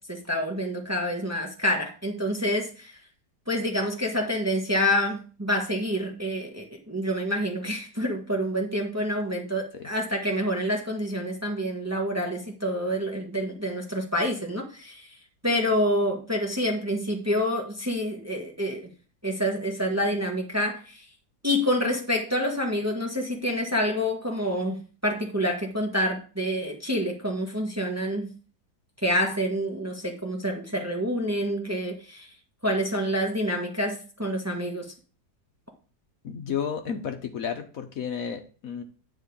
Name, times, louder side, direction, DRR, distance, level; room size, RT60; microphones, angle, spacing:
voice 1, 0.1-3.0 3.5-15.1 15.4-18.9 19.2-21.0 21.4-28.3 29.0-32.3 32.6-34.8, equal, 10° right, 1 dB, 1.2 m, -27 dB
voice 2, 36.2-38.8, left 7 dB, 60° left, 6 dB, 1.2 m, -32 dB
9.9 x 3.7 x 6.9 m, 0.38 s
omnidirectional pair, 1.8 m